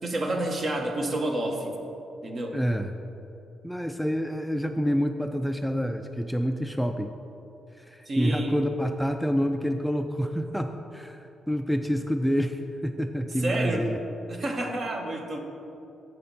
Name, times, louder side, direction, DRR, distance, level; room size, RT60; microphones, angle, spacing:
voice 1, 0.0-1.8 2.2-2.6 8.0-8.6 13.4-13.9 14.3-15.4, right 1 dB, 45° right, 3 dB, 1.1 m, -29 dB
voice 2, 2.5-2.9 3.6-7.1 7.8-14.0, equal, ahead, 5 dB, 0.4 m, -28 dB
7.4 x 6.7 x 5.4 m, 2.9 s
cardioid pair, 90°, 0 cm